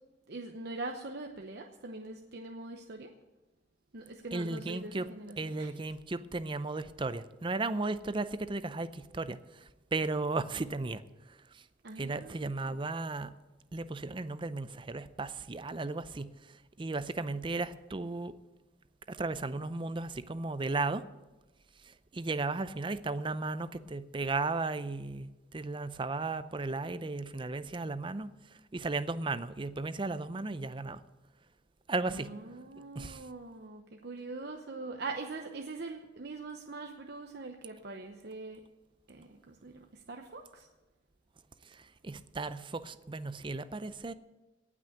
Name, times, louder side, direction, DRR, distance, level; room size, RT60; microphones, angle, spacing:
voice 1, 0.3-3.1 3.9-5.7 11.8-12.8 32.1-38.6 39.1-40.7, right 3 dB, 60° right, 3 dB, 0.9 m, -43 dB
voice 2, 4.3-5.1 5.4-11.0 11.3-11.6 12.0-13.3 13.7-18.3 19.1-21.1 21.8-31.0 31.9-32.3 32.9-33.3 41.7-44.1, right 3 dB, 25° right, 13 dB, 0.5 m, -35 dB
18.0 x 6.1 x 8.4 m, 1.1 s
head